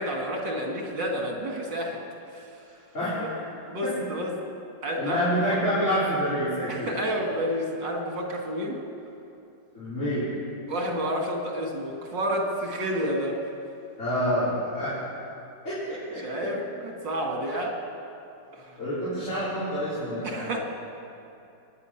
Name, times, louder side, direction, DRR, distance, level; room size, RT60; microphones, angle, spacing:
voice 1, 0.0-2.0 2.3-2.4 3.2-3.3 3.7-4.3 4.8-5.2 6.7-8.8 10.7-13.4 16.2-17.7 18.5-18.8 20.2-20.6, equal, 85° right, 0 dB, 2.9 m, -30 dB
voice 2, 2.9-3.3 3.8-3.9 5.0-6.9 9.7-10.3 14.0-15.0 15.6-16.5 18.8-20.5, equal, 45° left, -13 dB, 4.6 m, -27 dB
24.0 x 9.6 x 5.9 m, 2.7 s
omnidirectional pair, 1.9 m